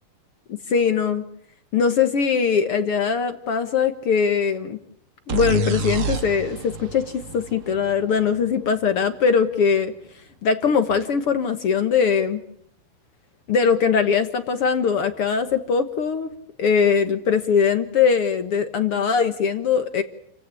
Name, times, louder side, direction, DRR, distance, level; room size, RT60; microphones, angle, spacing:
voice 1, 0.7-1.2 1.7-4.8 5.3-9.9 10.4-12.4 13.5-16.3 16.6-20.0, left 6 dB, 55° left, 9 dB, 1.7 m, -21 dB
sound 1, 5.3-9.0, right 3 dB, 50° right, 1.8 m, -29 dB
29.0 x 16.0 x 9.8 m, 0.70 s
omnidirectional pair, 4.0 m